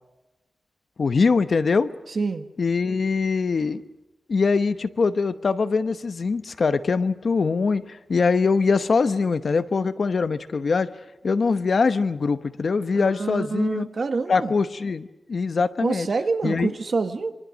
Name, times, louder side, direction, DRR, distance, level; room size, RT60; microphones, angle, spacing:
voice 1, 1.0-1.9 2.6-3.8 4.3-10.9 11.2-13.9 14.3-16.1 16.4-16.7, left 4 dB, 50° left, 0.9 m, -22 dB
voice 2, 2.1-2.5 12.9-14.5 15.8-17.4, right 4 dB, 45° right, 1.5 m, -26 dB
26.5 x 25.0 x 6.3 m
wide cardioid pair, 150°, 0 cm